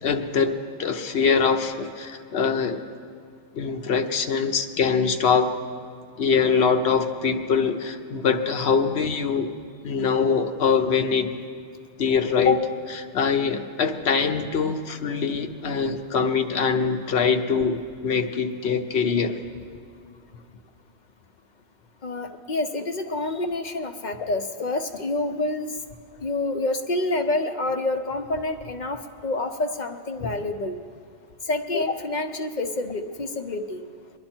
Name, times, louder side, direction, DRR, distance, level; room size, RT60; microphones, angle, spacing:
voice 1, 0.0-2.8 3.5-5.5 6.2-9.5 9.8-11.3 12.0-19.4 31.7-31.8, left 5 dB, 65° left, 6 dB, 1.0 m, -23 dB
voice 2, 22.0-25.7 26.2-30.8 31.5-33.8, left 2 dB, 45° left, 6 dB, 0.7 m, -28 dB
22.5 x 10.5 x 4.4 m, 2.2 s
omnidirectional pair, 1.2 m